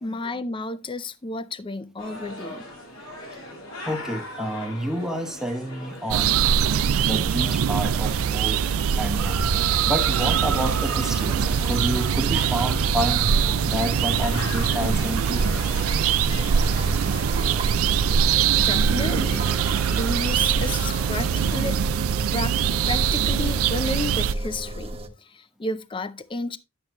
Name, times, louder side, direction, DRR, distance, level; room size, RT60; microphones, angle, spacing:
voice 1, 0.0-2.7 18.6-21.8 22.3-22.6 22.9-24.9 25.2-26.6, left 2 dB, 25° left, 0.5 m, -32 dB
sound 1, 2.0-21.7, left 1 dB, 70° left, 3.7 m, -39 dB
voice 2, 3.9-6.4 7.1-8.6 9.0-9.4 9.8-11.4 11.6-13.3 13.6-15.4, equal, ahead, 1.0 m, -29 dB
sound 2, 6.1-24.3, right 8 dB, 70° right, 0.4 m, -23 dB
sound 3, 9.1-25.1, right 1 dB, 25° right, 1.2 m, -33 dB
11.0 x 7.2 x 3.0 m
head